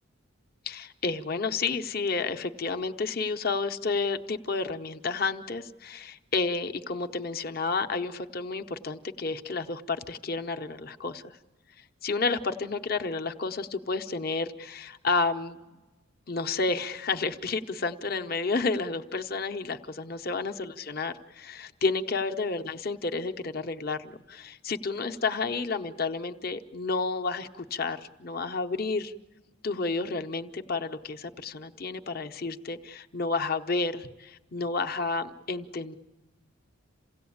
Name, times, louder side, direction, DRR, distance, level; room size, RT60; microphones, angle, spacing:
voice 1, 0.7-11.4 12.0-15.6 16.3-29.1 29.6-36.0, left 4 dB, 45° left, 6 dB, 0.9 m, -31 dB
28.0 x 17.0 x 8.7 m, 1.2 s
head